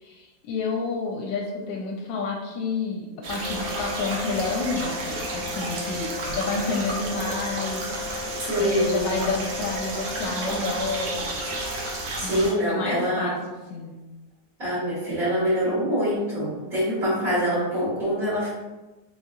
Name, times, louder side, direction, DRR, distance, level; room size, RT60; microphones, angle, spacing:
voice 1, 0.0-11.4 12.1-13.4 13.7-13.9, left 4 dB, 85° left, 0 dB, 1.3 m, -30 dB
sound 1, 3.2-12.1, left 5 dB, 40° left, 1.1 m, -37 dB
sound 2, 3.2-12.5, right 2 dB, 85° right, 1.5 m, -32 dB
voice 2, 8.5-9.1 12.2-13.3 14.6-18.5, equal, 45° right, -11 dB, 2.0 m, -25 dB
4.2 x 3.9 x 2.4 m, 1.1 s
omnidirectional pair, 2.0 m